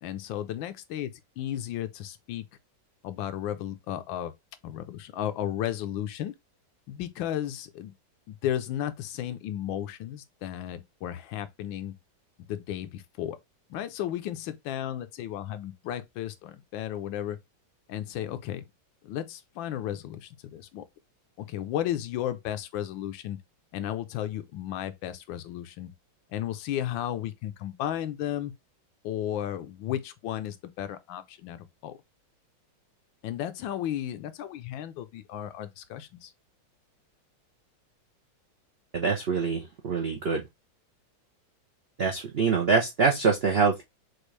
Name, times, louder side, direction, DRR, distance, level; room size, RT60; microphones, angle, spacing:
voice 1, 0.0-2.4 3.0-4.3 4.6-6.3 6.9-7.9 8.3-11.9 12.5-13.4 13.7-17.4 17.9-18.6 19.0-20.8 21.4-23.4 23.7-25.9 26.3-28.5 29.0-32.0 33.2-36.3, left 11 dB, 80° left, 1.3 m, -34 dB
voice 2, 38.9-40.4 42.0-43.8, right 5 dB, 65° right, 0.6 m, -25 dB
6.2 x 2.4 x 3.2 m
omnidirectional pair, 2.1 m